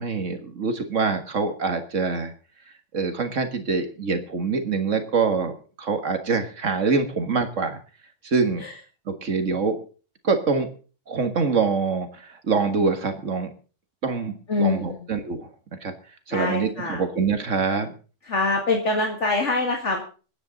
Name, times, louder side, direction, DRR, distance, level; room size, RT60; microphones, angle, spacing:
voice 1, 0.0-2.3 2.9-7.8 8.2-8.6 9.1-9.8 10.2-10.7 11.1-13.5 14.0-15.5 15.8-15.9 16.3-17.9, right 4 dB, 85° right, 7 dB, 2.0 m, -25 dB
voice 2, 14.5-15.1 16.3-17.0 18.2-20.0, left 3 dB, 75° left, 1 dB, 2.4 m, -24 dB
26.5 x 9.6 x 4.0 m, 0.37 s
omnidirectional pair, 1.3 m